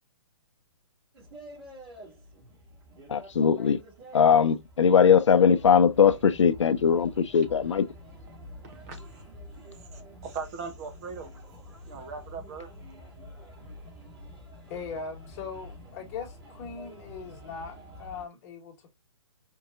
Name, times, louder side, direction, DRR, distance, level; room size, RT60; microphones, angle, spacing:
sound 1, 1.1-18.3, equal, 50° right, 2.4 m, -47 dB
voice 1, 3.1-3.8 4.1-7.8, left 7 dB, 75° left, 0.5 m, -20 dB
voice 2, 8.7-9.0 9.7-11.3 11.9-12.7, right 5 dB, 30° right, 0.8 m, -39 dB
voice 3, 14.7-18.9, left 5 dB, 30° left, 1.5 m, -40 dB
4.5 x 2.7 x 2.4 m
hypercardioid pair, 140°, 15 cm